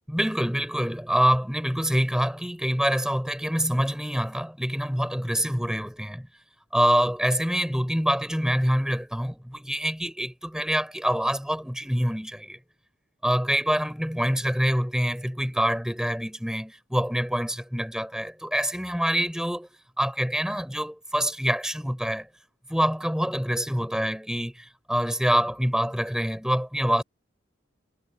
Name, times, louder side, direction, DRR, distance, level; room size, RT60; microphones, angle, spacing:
voice 1, 0.1-6.3 6.7-12.6 13.2-19.7 20.0-22.3 22.7-27.0, equal, 5° right, 6.5 m, -26 dB
head